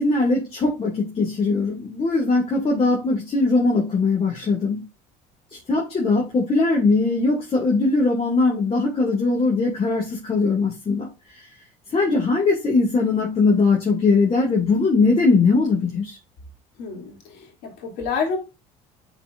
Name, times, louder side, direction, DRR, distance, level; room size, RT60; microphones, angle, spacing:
voice 1, 0.0-4.9 5.7-11.1 11.9-16.2, left 3 dB, 35° left, 2.4 m, -20 dB
voice 2, 16.8-17.1 17.6-18.4, left 5 dB, 70° left, 3.0 m, -27 dB
10.5 x 4.9 x 2.6 m
supercardioid pair, 90°, 18 cm